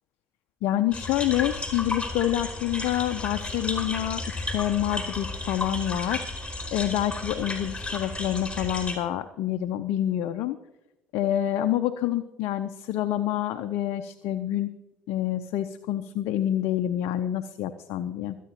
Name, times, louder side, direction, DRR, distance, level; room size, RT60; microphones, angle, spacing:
voice 1, 0.6-10.6 11.1-14.7 15.1-18.4, left 12 dB, 60° left, 9 dB, 0.7 m, -27 dB
sound 1, 0.9-9.0, left 2 dB, 15° left, 4.5 m, -33 dB
26.0 x 9.2 x 2.9 m, 0.98 s
figure-of-eight pair, 55°, 6 cm